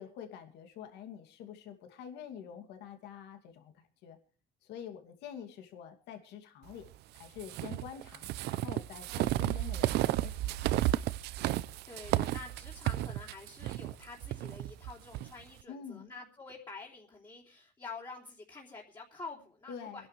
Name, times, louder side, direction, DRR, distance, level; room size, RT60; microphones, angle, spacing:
voice 1, 0.0-4.2 4.6-6.9 7.1-10.6 15.7-16.1 19.7-20.1, left 8 dB, 85° left, 6 dB, 2.6 m, -47 dB
sound 1, 7.4-15.3, right 15 dB, 80° right, 0.7 m, -32 dB
voice 2, 11.9-20.1, left 3 dB, 25° left, -2 dB, 3.3 m, -48 dB
24.5 x 11.5 x 3.3 m, 0.39 s
cardioid pair, 110°, 17 cm